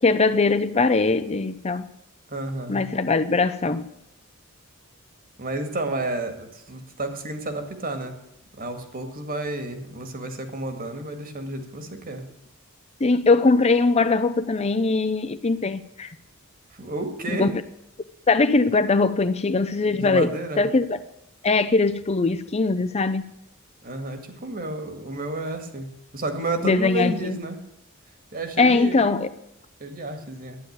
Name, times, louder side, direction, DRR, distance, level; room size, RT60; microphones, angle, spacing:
voice 1, 0.0-1.9 2.7-3.9 13.0-16.2 17.3-17.5 18.3-21.0 21.4-23.3 26.6-27.4 28.6-29.3, left 3 dB, 30° left, 0.5 m, -21 dB
voice 2, 2.3-2.9 5.4-8.2 8.6-12.3 16.7-17.5 19.7-20.6 23.8-27.6 28.3-29.0 29.8-30.6, right 2 dB, 40° right, 2.0 m, -31 dB
12.0 x 9.9 x 8.1 m
head